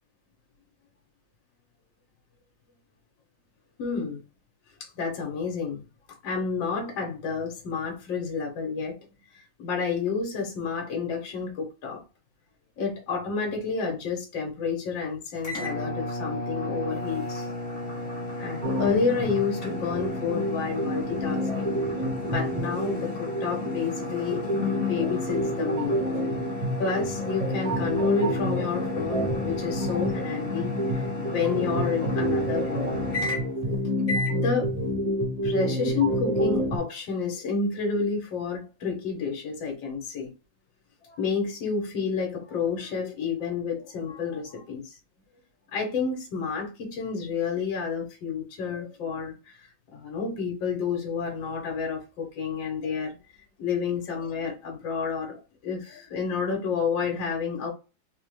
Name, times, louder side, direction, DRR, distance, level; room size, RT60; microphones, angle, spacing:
voice 1, 3.8-4.2 4.8-5.8 6.1-9.0 9.3-12.0 12.8-17.5 17.9-18.0 18.4-21.8 22.2-26.0 26.8-32.9 34.3-34.7 35.4-40.3 41.0-45.0 45.7-49.6 49.9-53.2 53.6-57.7, left 5 dB, 80° left, 1.7 m, -30 dB
sound 1, 15.4-33.7 34.0-34.4, left 1 dB, 40° left, 0.9 m, -34 dB
sound 2, 18.6-36.8, equal, 65° right, 0.3 m, -29 dB
4.2 x 2.1 x 3.1 m
omnidirectional pair, 2.0 m